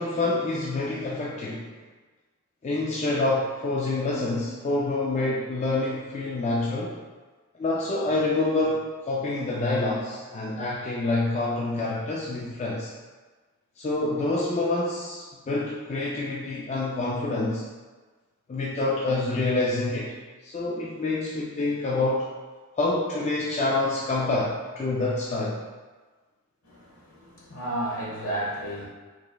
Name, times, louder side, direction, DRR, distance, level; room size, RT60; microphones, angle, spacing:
voice 1, 0.0-1.7 2.6-7.0 7.6-12.9 13.8-17.6 18.5-20.1 20.4-22.3 22.8-25.6, left 2 dB, 30° left, -5 dB, 0.3 m, -27 dB
voice 2, 26.6-28.9, right 1 dB, 65° left, -5 dB, 1.2 m, -32 dB
4.7 x 3.1 x 2.2 m, 1.3 s
head